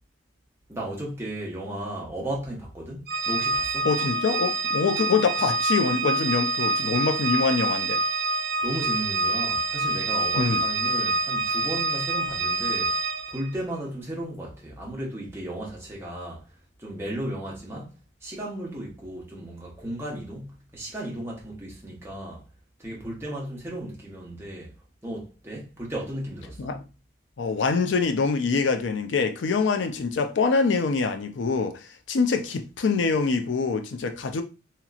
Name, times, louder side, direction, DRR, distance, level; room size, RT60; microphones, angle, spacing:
voice 1, 0.7-3.9 8.6-13.0 13.3-16.5 16.8-22.4 22.8-24.7 25.0-26.8, right 1 dB, 15° right, 0.9 m, -35 dB
Organ, 3.1-13.5, right 2 dB, 55° right, 0.4 m, -26 dB
voice 2, 3.8-8.0 10.4-10.6 26.6-26.8 27.4-34.4, left 4 dB, 80° left, 0.4 m, -25 dB
2.9 x 2.9 x 2.4 m
head